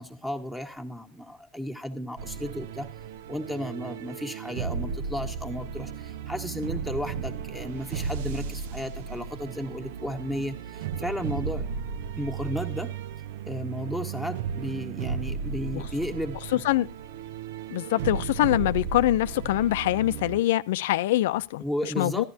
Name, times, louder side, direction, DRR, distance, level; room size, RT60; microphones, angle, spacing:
voice 1, 0.0-2.9 3.3-11.6 12.2-12.9 13.5-16.6 21.6-22.3, equal, 5° right, 1.6 m, -34 dB
sound 1, 2.2-20.4, right 6 dB, 80° right, 0.6 m, -35 dB
voice 2, 16.5-16.9 17.7-22.2, left 15 dB, 80° left, 0.5 m, -24 dB
14.5 x 11.0 x 2.8 m
supercardioid pair, 120°, 0 cm